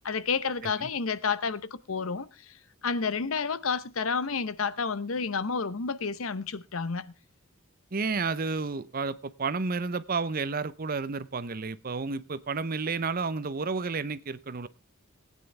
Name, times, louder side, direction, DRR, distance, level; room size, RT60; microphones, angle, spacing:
voice 1, 0.0-1.6 1.9-2.6 2.8-7.1, left 5 dB, 80° left, 0.8 m, -30 dB
voice 2, 7.9-14.7, right 4 dB, 45° right, 0.7 m, -31 dB
19.5 x 9.3 x 3.3 m
head